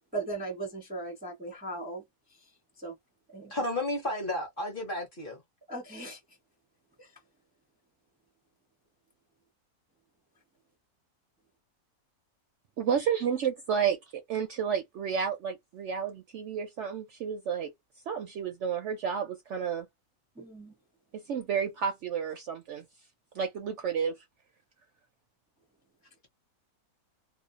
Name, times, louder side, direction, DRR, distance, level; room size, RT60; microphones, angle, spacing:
voice 1, 0.1-2.9 3.3-3.5 5.7-6.4 7.0-7.1 20.4-20.7, right 2 dB, 10° right, 0.4 m, -39 dB
voice 2, 3.5-5.4, left 1 dB, 45° left, 0.8 m, -32 dB
voice 3, 12.8-17.7 18.1-19.9 21.3-22.9 23.3-24.2, right 7 dB, 65° right, 0.7 m, -31 dB
2.6 x 2.0 x 2.4 m
omnidirectional pair, 1.6 m